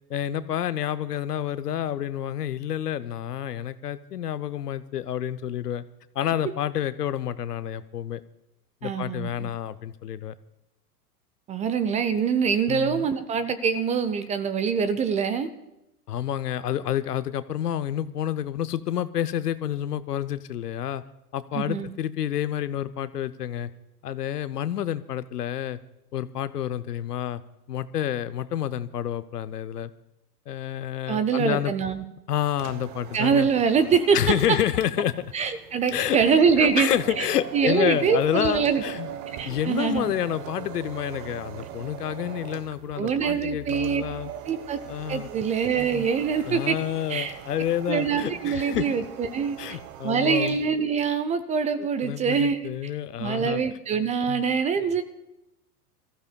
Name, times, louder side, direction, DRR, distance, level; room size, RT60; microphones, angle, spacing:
voice 1, 0.1-5.8 6.1-8.2 8.8-10.3 12.7-13.1 16.1-21.0 21.3-23.7 24.0-25.8 26.1-27.4 27.7-29.9 30.5-31.7 32.3-33.5 34.1-35.3 35.9-36.2 36.6-39.1 39.5-44.3 44.9-45.3 46.5-48.9 49.6-50.6 51.8-53.6 54.3-54.4, left 10 dB, 80° left, 14 dB, 0.8 m, -29 dB
voice 2, 8.8-9.5 11.5-15.5 21.5-21.9 31.1-32.0 33.1-34.2 35.3-36.9 37.2-37.3 37.5-38.8 39.4-40.1 43.0-44.8 45.1-46.8 47.1-47.3 47.9-49.8 50.0-52.6 53.2-55.0, right 6 dB, 15° right, 12 dB, 0.4 m, -24 dB
sound 1, 32.5-50.7, right 9 dB, 40° right, 0.9 m, -41 dB
26.0 x 15.0 x 2.3 m, 0.90 s
hypercardioid pair, 100°, 47 cm